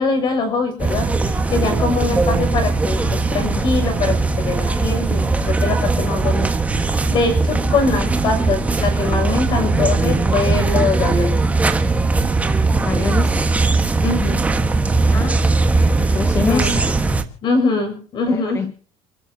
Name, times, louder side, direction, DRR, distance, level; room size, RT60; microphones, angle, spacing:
voice 1, 0.0-6.5 6.8-11.4 14.0-14.4 16.4-18.7, left 4 dB, 35° left, 7 dB, 6.6 m, -23 dB
sound 1, 0.8-17.2, right 3 dB, 10° right, 1.4 m, -19 dB
voice 2, 12.7-13.3 15.1-15.4 16.0-16.8 18.5-18.7, left 5 dB, 20° left, 10 dB, 1.1 m, -25 dB
29.0 x 13.5 x 2.8 m, 0.40 s
cardioid pair, 175°, 13 cm